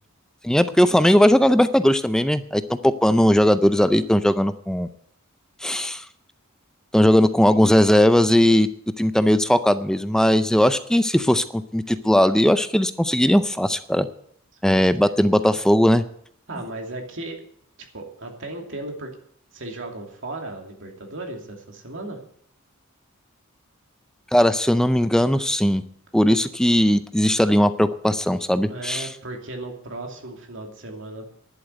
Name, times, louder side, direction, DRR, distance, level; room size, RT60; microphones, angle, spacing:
voice 1, 0.4-4.9 5.6-6.0 6.9-8.7 9.0-14.1 14.6-16.0 24.3-25.8 26.1-29.1, equal, 5° left, 11 dB, 0.4 m, -18 dB
voice 2, 16.5-17.4 17.9-19.1 19.5-22.2 28.7-31.3, right 2 dB, 60° right, 2 dB, 2.6 m, -35 dB
11.0 x 7.7 x 9.1 m, 0.67 s
head